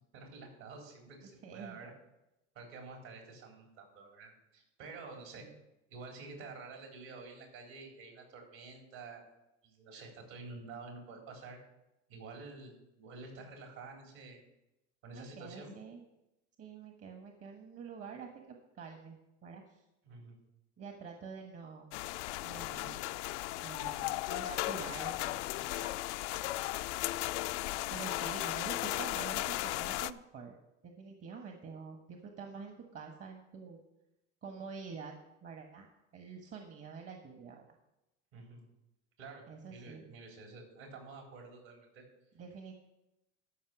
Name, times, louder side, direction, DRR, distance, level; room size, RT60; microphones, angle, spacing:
voice 1, 0.1-1.9 2.5-5.5 5.9-9.2 9.6-11.6 12.1-14.4 15.0-15.7 20.0-20.4 38.3-38.6 39.2-42.0, right 3 dB, 65° right, 1 dB, 4.1 m, -49 dB
voice 2, 1.4-1.8 5.4-5.5 15.1-16.0 16.6-19.8 20.8-21.9 22.4-23.1 23.6-26.0 26.4-26.6 27.9-30.5 30.8-33.8 34.4-35.2 35.4-35.9 36.1-37.7 39.5-40.1 42.3-42.7, right 5 dB, 40° right, 3 dB, 1.4 m, -47 dB
sound 1, 21.9-30.1, left 18 dB, 75° left, 0.5 m, -36 dB
13.0 x 5.6 x 6.1 m, 0.92 s
hypercardioid pair, 90°, 36 cm